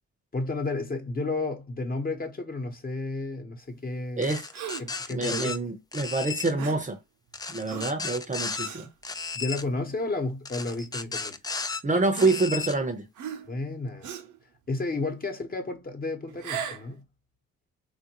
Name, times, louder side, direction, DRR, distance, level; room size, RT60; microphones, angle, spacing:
voice 1, 0.3-4.4 4.8-5.6 9.3-11.4 13.5-14.1 14.7-17.0, left 3 dB, 30° left, 1.1 m, -32 dB
sound 1, 4.2-5.6 5.9-6.5 7.3-8.7 9.0-9.6 10.5-11.8 12.1-12.8, left 4 dB, 15° left, 0.4 m, -34 dB
voice 2, 4.2-4.5 5.1-7.0 7.5-8.9 11.6-13.1, right 3 dB, 25° right, 0.8 m, -27 dB
Gasp, 4.5-5.0 6.6-6.9 7.7-8.0 8.6-8.9 9.6-9.8 10.8-10.9 12.1-12.8 13.2-13.6 14.0-14.4 16.3-16.9, right 8 dB, 80° right, 0.8 m, -38 dB
3.5 x 2.5 x 2.9 m
cardioid pair, 90°, 30 cm